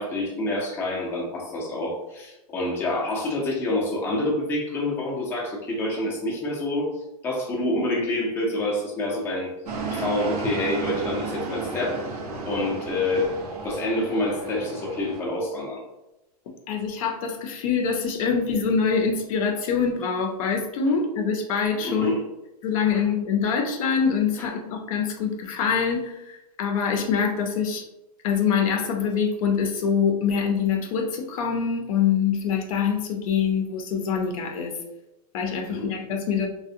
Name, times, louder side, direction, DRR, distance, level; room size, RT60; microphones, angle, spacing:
voice 1, 0.0-6.9 7.2-9.5 9.9-12.1 12.4-13.3 13.6-15.8 21.8-22.2 22.9-23.0 35.7-35.9, left 1 dB, 10° left, -3 dB, 0.4 m, -27 dB
sound 1, 9.7-15.2, right 3 dB, 75° right, 0.6 m, -33 dB
voice 2, 16.7-22.2 22.6-27.8 28.2-34.8 35.3-36.5, left 6 dB, 60° left, 3 dB, 0.5 m, -24 dB
2.5 x 2.1 x 2.5 m, 0.95 s
supercardioid pair, 145°, 20 cm